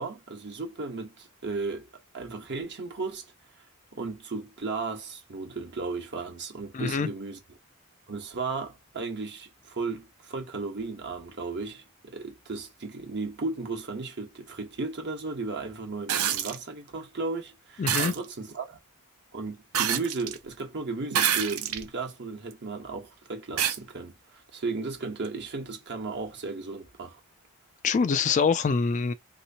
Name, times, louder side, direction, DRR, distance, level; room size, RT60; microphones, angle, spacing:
voice 1, 0.0-1.9 2.1-3.3 3.9-7.4 8.1-18.8 19.3-27.2, right 3 dB, 55° right, 1.1 m, -35 dB
voice 2, 6.7-7.1 17.8-18.1 27.8-29.1, left 5 dB, 35° left, 0.3 m, -24 dB
sound 1, 16.1-16.6 17.9-18.2 19.7-20.4 21.1-21.9 22.5-22.6 23.6-23.8 25.2-25.3, right 9 dB, 85° right, 0.6 m, -26 dB
3.3 x 2.9 x 2.8 m
head